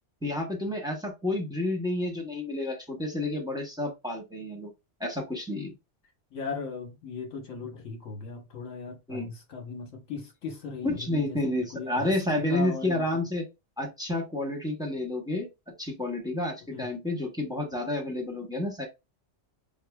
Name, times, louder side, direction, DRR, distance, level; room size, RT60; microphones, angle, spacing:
voice 1, 0.2-4.7 5.0-5.7 9.1-9.3 10.8-13.4 13.8-15.5 15.8-18.9, left 1 dB, 5° right, 0.8 m, -30 dB
voice 2, 6.3-13.2 16.7-16.9, left 5 dB, 80° left, 1.5 m, -38 dB
5.0 x 2.1 x 2.3 m
omnidirectional pair, 1.3 m